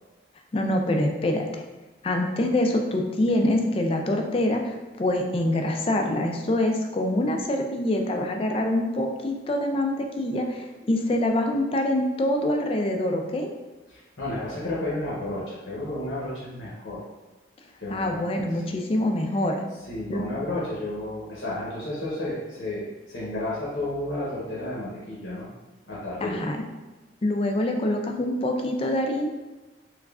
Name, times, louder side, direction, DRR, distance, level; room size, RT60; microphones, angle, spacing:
voice 1, 0.5-1.6 2.0-13.5 17.9-19.6 20.1-20.2 26.2-26.6 27.2-29.3, left 1 dB, 30° left, 3 dB, 0.3 m, -25 dB
voice 2, 13.9-17.0 17.8-18.2 18.7-18.8 19.9-25.5 25.9-26.4, left 1 dB, 80° left, -8 dB, 0.9 m, -32 dB
3.5 x 3.1 x 2.4 m, 1.2 s
head